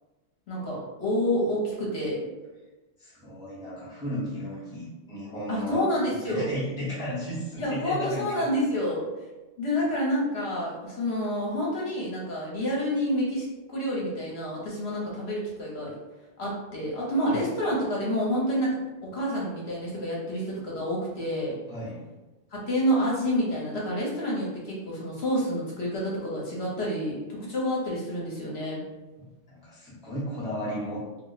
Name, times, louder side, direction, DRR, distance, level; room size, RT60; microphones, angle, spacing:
voice 1, 0.5-2.2 5.5-6.5 7.6-9.0 9.6-15.9 16.4-21.6 22.5-28.8, equal, 55° left, -5 dB, 1.0 m, -28 dB
voice 2, 3.0-8.5 17.3-17.5 21.7-22.0 29.2-31.0, equal, 5° right, -8 dB, 0.6 m, -34 dB
2.5 x 2.1 x 3.9 m, 1.1 s
omnidirectional pair, 1.3 m